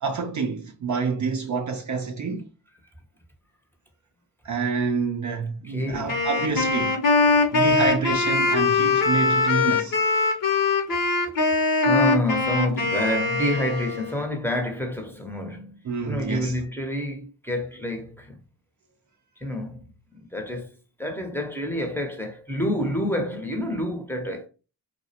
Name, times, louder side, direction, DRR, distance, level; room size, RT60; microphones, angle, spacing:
voice 1, 0.0-2.5 4.4-7.0 7.5-10.0 15.9-16.5, right 5 dB, 45° right, 0.4 m, -27 dB
voice 2, 5.6-6.2 7.3-7.6 11.8-18.4 19.4-24.5, equal, 5° left, 0.7 m, -28 dB
Wind instrument woodwind instrument, 6.1-14.2, left 3 dB, 50° left, 0.7 m, -22 dB
2.3 x 2.1 x 2.7 m
supercardioid pair, 40°, 43 cm